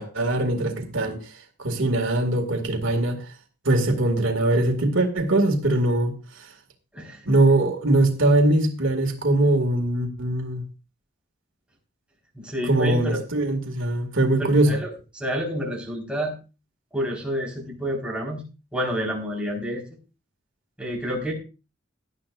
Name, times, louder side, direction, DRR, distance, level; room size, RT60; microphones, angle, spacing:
voice 1, 0.0-1.3 1.6-3.2 3.6-6.1 7.3-10.6 12.6-14.8, right 2 dB, 80° right, 4 dB, 2.3 m, -21 dB
voice 2, 6.9-7.2 12.3-13.2 14.4-16.3 16.9-18.4 18.7-19.8 20.8-21.3, equal, 5° right, -3 dB, 4.6 m, -29 dB
18.0 x 11.5 x 2.6 m, 0.31 s
head